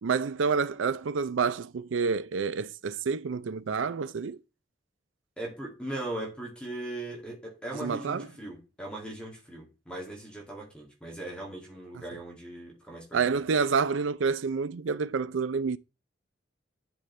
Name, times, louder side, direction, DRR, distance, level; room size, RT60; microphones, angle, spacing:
voice 1, 0.0-4.4 7.8-8.3 13.1-15.8, right 5 dB, 90° right, 0.5 m, -28 dB
voice 2, 5.4-13.2, right 1 dB, 5° left, 2.2 m, -39 dB
10.0 x 5.1 x 3.2 m
head